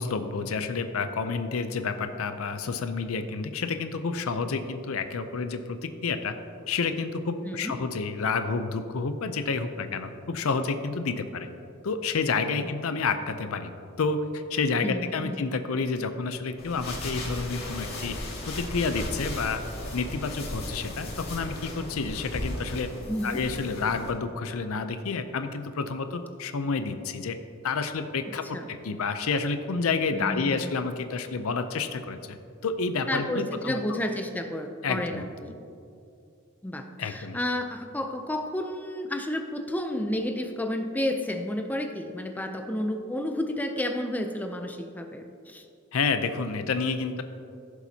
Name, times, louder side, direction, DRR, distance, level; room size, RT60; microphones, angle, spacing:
voice 1, 0.0-6.4 6.7-11.5 11.8-13.7 14.0-18.2 18.5-19.6 19.9-22.9 23.2-27.4 27.6-32.4 32.6-34.0 34.8-35.3 37.0-37.4 45.9-47.2, left 4 dB, 75° left, 9 dB, 0.5 m, -29 dB
voice 2, 12.6-13.0 14.8-15.4 23.1-23.4 28.5-28.7 30.1-30.7 33.1-35.6 36.6-45.6, left 1 dB, 10° left, 5 dB, 0.5 m, -31 dB
sound 1, 16.6-24.1, left 1 dB, 50° left, 2.1 m, -36 dB
15.0 x 7.2 x 2.8 m, 2.5 s
head